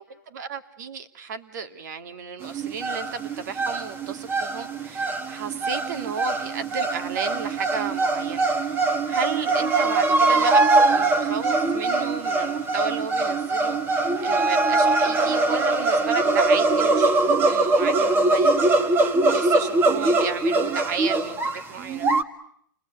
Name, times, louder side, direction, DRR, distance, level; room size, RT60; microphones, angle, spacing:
voice 1, 0.0-22.1, right 6 dB, 60° right, 8 dB, 2.6 m, -34 dB
sound 1, 2.4-22.2, right 3 dB, 20° right, 1.8 m, -22 dB
29.0 x 21.5 x 9.4 m, 0.70 s
hypercardioid pair, 140°, 11 cm